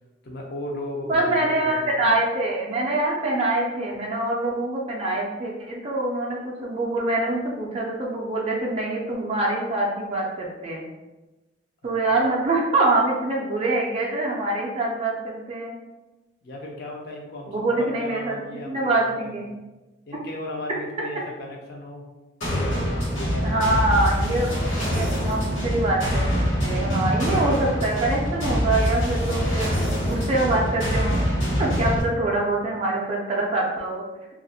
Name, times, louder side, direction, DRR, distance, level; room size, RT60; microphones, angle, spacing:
voice 1, 0.2-2.1 12.1-12.2 16.4-19.6 20.1-22.1 22.4-23.6, left 1 dB, 55° left, -1 dB, 0.5 m, -36 dB
voice 2, 1.1-10.8 11.8-15.8 17.5-18.4 18.7-19.4 23.4-29.7 30.1-31.2 31.6-34.0, right 2 dB, 30° right, -3 dB, 0.3 m, -24 dB
sound 1, 22.4-32.0, equal, 80° left, 1.0 m, -24 dB
2.3 x 2.0 x 2.6 m, 1.1 s
head